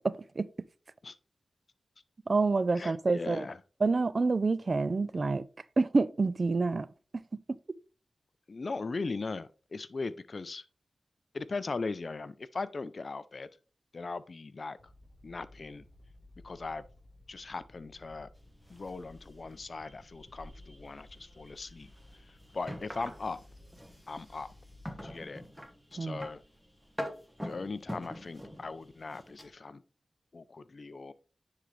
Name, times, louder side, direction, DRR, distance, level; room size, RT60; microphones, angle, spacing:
voice 1, 0.0-0.7 2.3-3.5 3.8-6.9 7.3-7.6 26.0-26.3, right 3 dB, 45° right, 0.3 m, -28 dB
voice 2, 2.8-3.6 8.5-10.7 11.3-13.5 13.9-14.9 15.2-15.8 16.4-16.9 17.3-18.3 18.7-23.4 24.1-24.5 25.0-25.4 25.9-26.4 27.4-29.8 30.3-31.1, left 3 dB, 50° left, 0.4 m, -39 dB
sound 1, 14.7-25.3, left 1 dB, 30° left, 3.8 m, -57 dB
sound 2, 18.4-29.5, equal, ahead, 1.2 m, -46 dB
9.9 x 3.8 x 3.2 m
wide cardioid pair, 75°, 0 cm